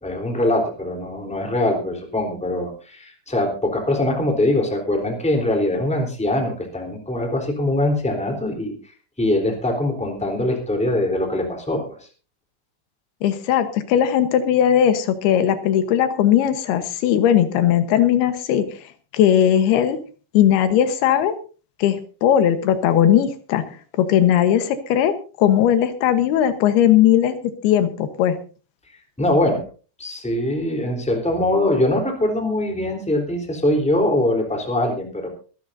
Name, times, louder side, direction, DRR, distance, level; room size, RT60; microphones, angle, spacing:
voice 1, 0.0-8.7 9.2-12.1 29.2-29.6 30.0-35.3, left 1 dB, ahead, 2 dB, 2.8 m, -22 dB
voice 2, 13.2-18.8 19.1-20.0 20.3-21.3 21.8-23.6 24.0-28.4, left 10 dB, 85° left, 10 dB, 3.1 m, -18 dB
24.5 x 12.0 x 2.6 m, 0.36 s
omnidirectional pair, 4.4 m